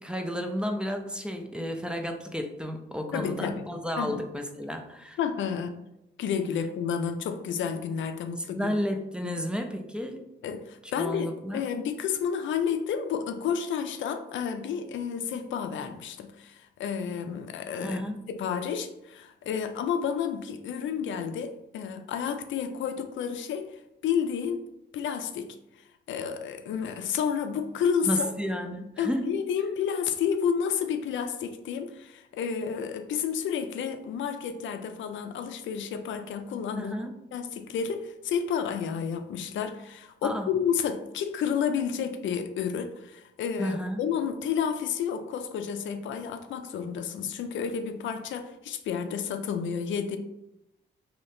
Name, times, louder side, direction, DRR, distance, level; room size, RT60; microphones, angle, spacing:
voice 1, 0.0-5.2 8.5-10.2 11.0-11.6 17.8-18.2 28.0-29.3 36.8-37.1 40.2-40.5 43.6-44.0, equal, 5° right, 4 dB, 0.3 m, -32 dB
voice 2, 3.1-3.7 4.0-4.2 5.2-5.8 6.2-8.7 9.2-9.4 10.4-18.0 18.3-25.6 26.1-28.3 29.0-37.0 37.3-50.2, left 7 dB, 80° left, 8 dB, 0.4 m, -31 dB
2.7 x 2.6 x 3.4 m, 0.88 s
cardioid pair, 125°, 19 cm